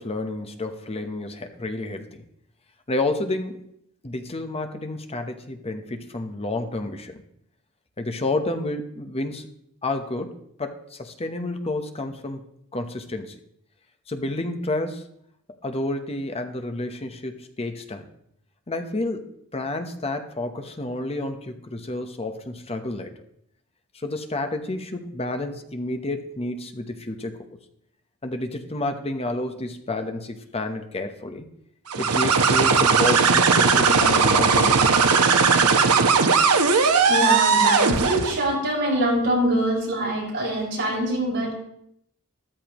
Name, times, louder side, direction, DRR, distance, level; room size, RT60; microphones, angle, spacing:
voice 1, 0.0-2.2 2.9-3.6 4.0-7.2 8.0-9.5 9.8-12.4 12.7-13.4 14.1-15.0 15.6-18.1 18.7-23.1 23.9-27.4 28.2-31.5 32.0-35.0, left 2 dB, 25° left, 6 dB, 1.0 m, -30 dB
sound 1, 31.9-38.4, right 5 dB, 80° right, 1.1 m, -18 dB
voice 2, 36.3-41.5, right 1 dB, 55° right, -4 dB, 5.7 m, -25 dB
13.5 x 13.5 x 3.1 m, 0.73 s
head